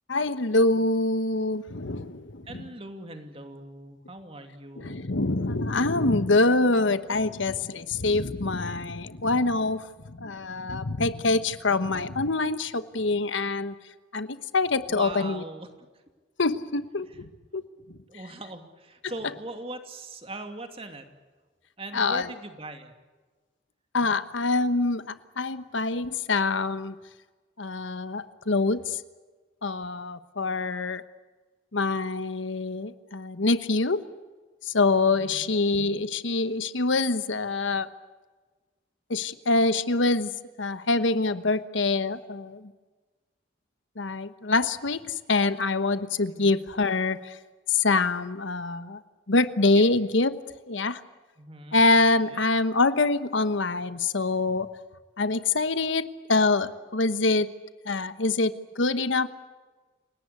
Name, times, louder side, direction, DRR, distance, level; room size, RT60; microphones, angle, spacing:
voice 1, 0.1-2.6 4.8-13.7 14.1-15.4 16.4-18.0 21.9-22.3 23.9-25.0 25.4-26.9 27.6-29.0 29.6-31.0 31.7-34.0 34.6-37.9 39.1-40.3 40.6-42.7 44.0-47.4 47.7-49.0 49.3-50.4 50.7-51.0 51.7-54.7 55.2-57.5 57.8-59.3, left 3 dB, 75° left, 12 dB, 1.2 m, -25 dB
voice 2, 2.4-5.1 14.9-15.7 17.1-17.2 18.1-21.1 21.8-22.9 35.1-35.5 46.3-46.6 49.6-49.8 51.4-52.4, right 2 dB, 30° right, 6 dB, 2.6 m, -41 dB
29.0 x 18.5 x 8.4 m, 1.3 s
head